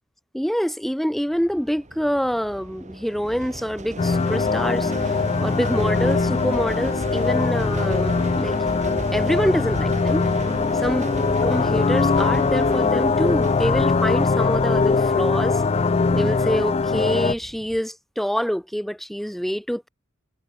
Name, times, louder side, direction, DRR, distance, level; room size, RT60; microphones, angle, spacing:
voice 1, 0.3-5.1 5.4-8.6 9.1-10.2 10.7-11.1 11.4-15.6 16.1-19.9, equal, ahead, 1.0 m, -26 dB
sound 1, 1.3-17.8, right 2 dB, 35° right, 1.4 m, -35 dB
sound 2, 4.0-17.3, left 4 dB, 30° left, 0.4 m, -21 dB
head